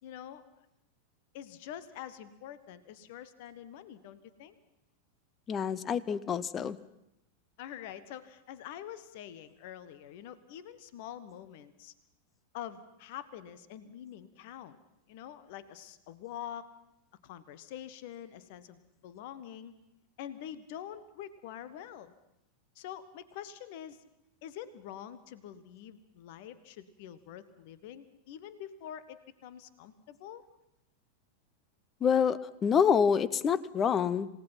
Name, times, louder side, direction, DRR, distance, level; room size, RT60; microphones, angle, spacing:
voice 1, 0.0-0.4 1.3-4.5 7.6-11.9 12.5-14.8 15.1-16.7 17.2-19.7 20.2-22.1 22.7-24.0 24.4-30.4, left 10 dB, 50° left, 15 dB, 1.3 m, -45 dB
voice 2, 5.5-6.8 32.0-34.3, left 7 dB, 25° left, 19 dB, 0.8 m, -27 dB
27.0 x 18.0 x 5.8 m, 0.83 s
figure-of-eight pair, 90°, 0 cm